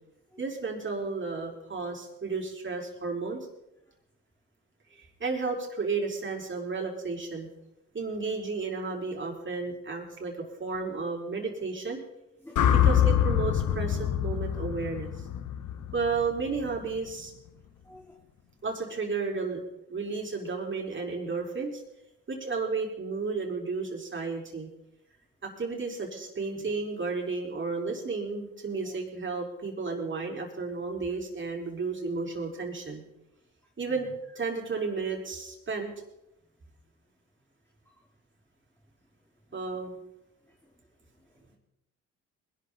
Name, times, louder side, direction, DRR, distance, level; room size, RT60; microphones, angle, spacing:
voice 1, 0.4-3.5 5.0-7.5 7.9-10.3 10.6-12.0 12.7-15.1 15.9-17.3 18.6-19.6 19.9-21.8 22.3-24.7 25.4-33.0 33.8-34.1 34.3-35.9 39.5-40.0, right 4 dB, 35° right, 0 dB, 5.1 m, -33 dB
sound 1, 12.6-16.8, left 9 dB, 65° left, 1.4 m, -25 dB
voice 2, 17.8-18.1 26.5-26.7 34.0-34.1 40.6-40.7 41.2-41.4, equal, 5° left, -1 dB, 2.7 m, -52 dB
21.0 x 12.0 x 4.3 m, 0.89 s
supercardioid pair, 65°, 33 cm